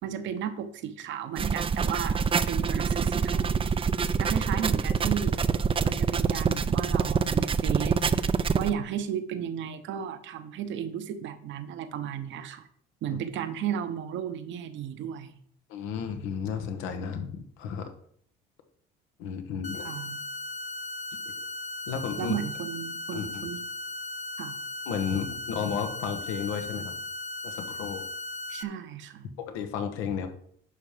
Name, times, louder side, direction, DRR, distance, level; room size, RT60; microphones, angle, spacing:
voice 1, 0.0-2.2 2.5-3.7 4.2-5.3 5.8-8.0 8.6-12.7 13.0-15.3 19.8-20.2 22.2-23.6 24.4-24.6 28.5-29.3, right 9 dB, 70° right, 10 dB, 1.2 m, -34 dB
sound 1, 1.4-8.7, right 6 dB, 25° right, 0.5 m, -26 dB
voice 2, 15.7-17.9 19.2-19.9 21.2-21.3 21.9-22.3 23.1-23.5 24.8-26.9 27.4-28.0 29.4-30.3, left 7 dB, 85° left, 6 dB, 1.4 m, -33 dB
sound 2, 19.6-28.6, left 2 dB, 35° left, 0.7 m, -37 dB
10.5 x 5.8 x 5.1 m, 0.64 s
supercardioid pair, 90°, 20 cm